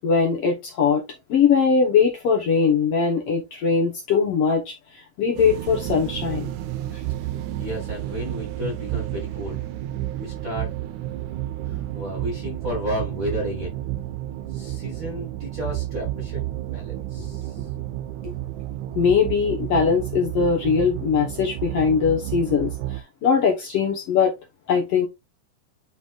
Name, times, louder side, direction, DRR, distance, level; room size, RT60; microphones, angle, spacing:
voice 1, 0.0-1.0 1.3-6.5 6.9-7.0 18.2-18.3 18.9-24.3 24.7-25.1, left 6 dB, 60° left, 1.8 m, -21 dB
sound 1, 5.4-23.0, right 14 dB, 80° right, 1.9 m, -31 dB
voice 2, 7.6-9.6 10.2-10.7 11.7-13.8 14.5-16.5 16.7-17.7, equal, 35° right, 1.5 m, -32 dB
9.7 x 4.0 x 2.4 m
omnidirectional pair, 3.7 m